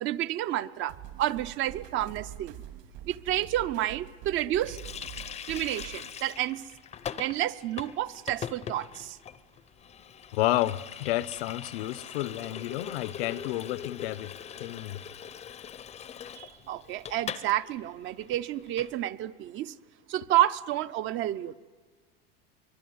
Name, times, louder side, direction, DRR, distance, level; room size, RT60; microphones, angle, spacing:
voice 1, 0.0-2.6 3.1-4.8 5.5-6.7 7.2-9.2 16.3-19.7 20.1-21.5, right 13 dB, 40° right, 0.7 m, -30 dB
sound 1, 0.9-6.0, right 11 dB, 60° right, 2.3 m, -45 dB
Water tap faucet, 4.6-17.5 17.8-17.9 18.2-18.9, left 8 dB, 20° left, 0.7 m, -42 dB
voice 2, 10.3-14.3 14.6-15.0, left 15 dB, 75° left, 0.9 m, -30 dB
23.5 x 22.5 x 9.5 m
supercardioid pair, 130°, 31 cm